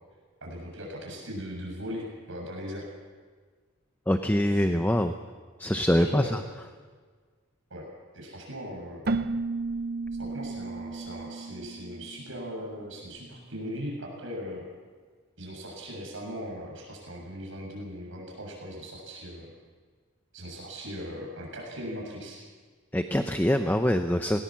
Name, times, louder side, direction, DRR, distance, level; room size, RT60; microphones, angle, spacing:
voice 1, 0.4-2.9 6.0-6.3 7.7-7.9 8.1-9.0 10.2-14.7 15.4-19.5 20.3-22.4, equal, 65° right, -1 dB, 7.2 m, -39 dB
voice 2, 4.1-5.1 5.6-6.4 22.9-24.4, equal, 10° left, 7 dB, 0.6 m, -24 dB
Keyboard (musical), 9.0-12.7, right 3 dB, 45° right, 0.7 m, -33 dB
19.5 x 19.5 x 7.4 m, 1.5 s
head